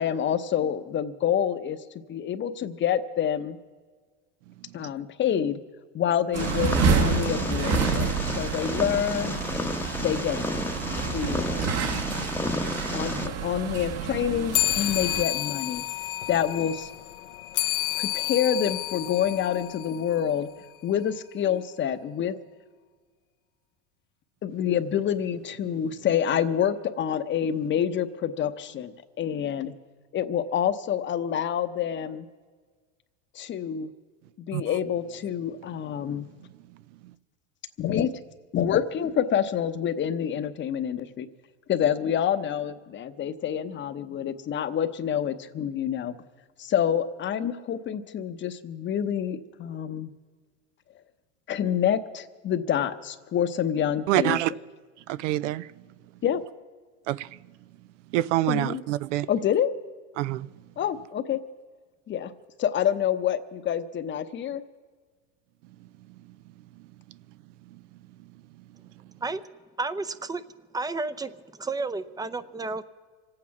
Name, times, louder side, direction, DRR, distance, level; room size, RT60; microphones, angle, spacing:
voice 1, 0.0-1.8 2.1-3.6 4.7-5.6 5.9-9.4 10.0-10.4 11.1-11.5 11.8-12.1 12.9-15.8 16.3-16.9 17.9-20.5 20.8-22.4 24.4-29.7 30.1-32.3 33.3-33.9 34.4-36.3 37.8-38.1 38.5-41.3 41.7-46.1 46.6-50.1 51.5-54.4 56.2-56.4 58.4-58.8 59.3-59.7 60.8-61.4 62.1-62.3 62.6-64.6, left 9 dB, 30° left, 0.8 m, -27 dB
sound 1, 6.3-15.2, right 5 dB, 45° right, 1.2 m, -28 dB
Purr, 6.4-13.3, left 2 dB, 5° left, 0.9 m, -32 dB
sound 2, 14.5-20.4, left 15 dB, 75° left, 0.8 m, -30 dB
voice 2, 54.1-54.5 55.1-55.7 57.1-57.3 58.1-59.3 60.2-60.5, right 15 dB, 75° right, 0.6 m, -25 dB
voice 3, 69.8-70.4 70.7-72.8, right 3 dB, 10° right, 0.6 m, -31 dB
25.5 x 8.7 x 5.9 m
supercardioid pair, 110°, 36 cm